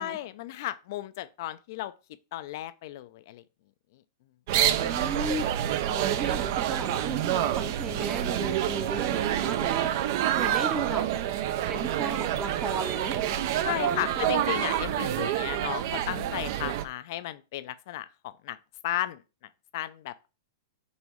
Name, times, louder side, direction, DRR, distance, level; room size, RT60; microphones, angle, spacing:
voice 1, 0.0-1.9 2.3-3.4 3.9-4.0 13.6-18.6 18.8-19.2 19.7-20.1, left 14 dB, 55° left, 0.4 m, -34 dB
sound 1, 4.5-16.8, right 11 dB, 55° right, 0.4 m, -28 dB
voice 2, 4.8-11.1 11.7-14.2, right 3 dB, 15° right, 0.6 m, -35 dB
5.4 x 3.0 x 3.0 m
hypercardioid pair, 140°, 2 cm